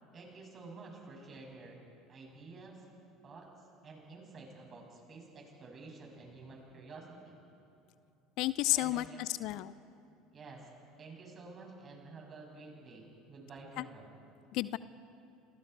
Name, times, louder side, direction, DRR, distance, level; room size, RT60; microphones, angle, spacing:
voice 1, 0.0-1.8 2.1-2.9 3.2-3.5 3.8-7.4 8.7-9.2 10.3-10.7 11.0-14.1, right 3 dB, 35° right, 0 dB, 7.5 m, -50 dB
voice 2, 8.4-9.7 13.8-13.9 14.5-14.8, left 16 dB, 60° left, 17 dB, 0.6 m, -32 dB
28.5 x 27.5 x 4.7 m, 2.7 s
hypercardioid pair, 70°, 0 cm